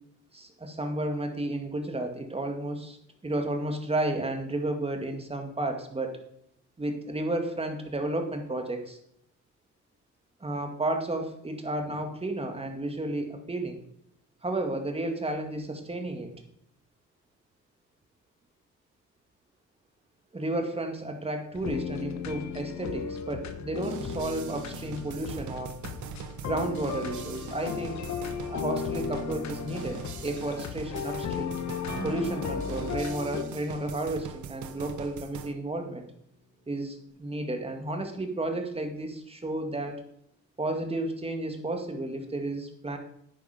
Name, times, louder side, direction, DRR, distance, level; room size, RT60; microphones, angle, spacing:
voice 1, 0.3-3.0 3.2-6.2 6.8-9.0 10.4-13.8 14.4-16.4 20.3-25.7 26.4-28.1 28.5-31.6 32.0-36.0 36.7-40.0 40.6-43.0, right 2 dB, 20° right, 4 dB, 2.3 m, -32 dB
sound 1, 21.5-33.4, left 7 dB, 65° left, 1.1 m, -35 dB
sound 2, 23.8-35.5, right 8 dB, 75° right, 1.1 m, -42 dB
Acoustic guitar, 31.9-37.1, equal, 60° right, 5.0 m, -43 dB
10.5 x 8.9 x 5.2 m, 0.73 s
cardioid pair, 90°, 30 cm